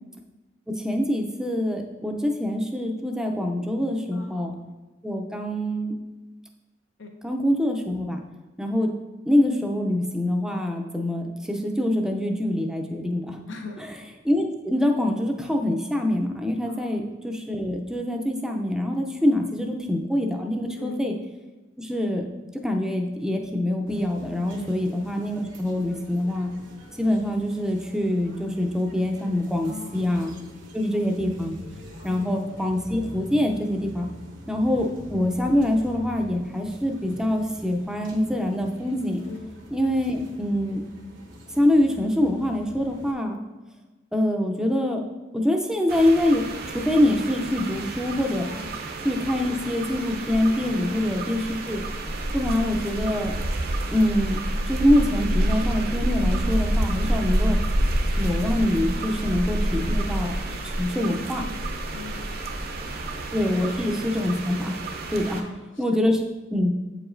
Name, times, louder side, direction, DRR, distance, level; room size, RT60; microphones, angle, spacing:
voice 1, 0.7-4.5 5.0-6.0 7.2-8.2 8.6-8.9 9.3-13.4 13.8-13.9 14.3-21.1 21.8-22.2 22.6-26.5 27.0-30.3 30.7-31.6 32.0-34.1 34.5-39.2 39.7-40.8 41.6-43.4 44.1-45.0 45.3-48.5 49.0-51.8 52.3-53.3 53.9-54.4 54.7-57.6 58.2-60.3 60.6-61.5 63.3-64.8 65.1-65.4 65.8-66.2 66.5-66.7, left 1 dB, 5° right, 2 dB, 0.5 m, -25 dB
voice 2, 4.1-4.6 7.0-7.1 13.5-13.8 16.7-17.0 19.2-19.4 20.8-21.0 24.5-24.7 29.6-30.0 30.9-31.0 32.0-32.3 34.7-34.8 39.3-39.4 45.7-45.8 48.4-48.7 50.7-50.9 56.7-56.9 59.1-59.2 61.9-62.5 62.8-63.1 63.5-63.8 65.2-65.6, left 3 dB, 90° left, 2 dB, 0.9 m, -41 dB
sound 1, 23.9-43.1, equal, 80° right, 1.0 m, -44 dB
sound 2, 45.9-65.4, right 1 dB, 55° right, 0.6 m, -28 dB
7.8 x 4.8 x 2.6 m, 1.1 s
head